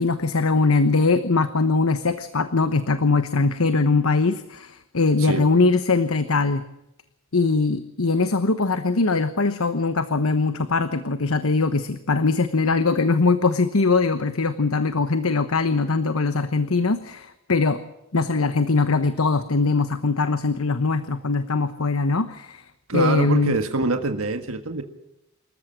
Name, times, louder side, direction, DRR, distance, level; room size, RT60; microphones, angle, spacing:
voice 1, 0.0-6.6 7.3-17.8 18.1-22.6 22.9-23.6, left 3 dB, 80° left, 11 dB, 1.1 m, -21 dB
voice 2, 22.9-24.8, right 3 dB, 80° right, 6 dB, 1.6 m, -25 dB
26.0 x 14.5 x 7.6 m, 0.91 s
head